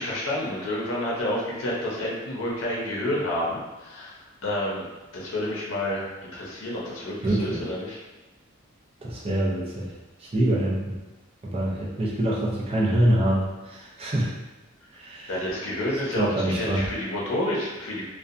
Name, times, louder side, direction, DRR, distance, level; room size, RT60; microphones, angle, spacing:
voice 1, 0.0-4.2 4.4-4.9 5.1-8.0 15.3-18.0, left 1 dB, 90° left, -5 dB, 0.6 m, -29 dB
voice 2, 7.2-7.6 9.0-9.9 10.2-11.0 11.4-14.3 14.9-15.3 16.1-16.9, right 1 dB, 30° right, -4 dB, 0.5 m, -25 dB
2.6 x 2.2 x 2.4 m, 1.1 s
head